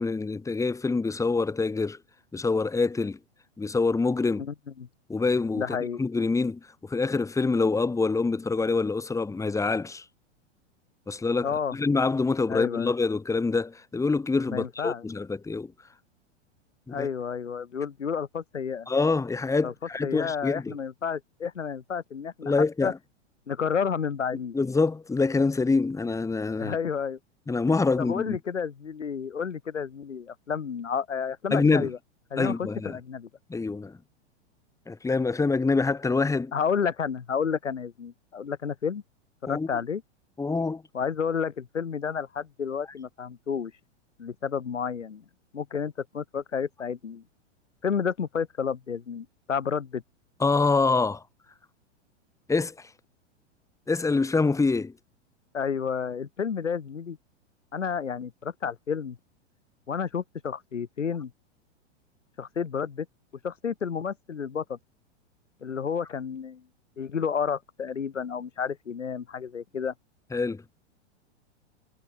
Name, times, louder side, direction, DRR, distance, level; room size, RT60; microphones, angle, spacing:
voice 1, 0.0-2.0 2.3-3.2 3.6-4.4 5.1-10.0 11.1-15.7 16.9-17.1 18.9-20.7 22.4-23.0 24.5-26.8 27.5-28.4 31.5-31.9 32.4-33.0 33.5-34.0 34.9-36.5 39.5-39.7 40.4-40.8 50.4-51.2 52.5-52.7 53.9-54.9 70.3-70.6, left 3 dB, 10° left, 1.8 m, -25 dB
voice 2, 4.4-4.9 5.5-6.0 11.4-11.7 12.5-12.9 14.5-15.0 16.9-18.9 19.6-19.7 20.0-22.5 22.8-22.9 23.5-24.6 26.6-27.2 28.0-32.0 32.3-33.3 36.5-39.0 39.4-40.0 40.9-43.7 44.2-45.2 45.5-47.2 47.8-50.0 55.5-57.2 57.7-59.2 59.9-61.3 62.4-63.1 63.4-64.8 65.6-66.6 67.0-69.9, left 6 dB, 90° left, 5.1 m, -31 dB
hypercardioid pair, 110°, 36 cm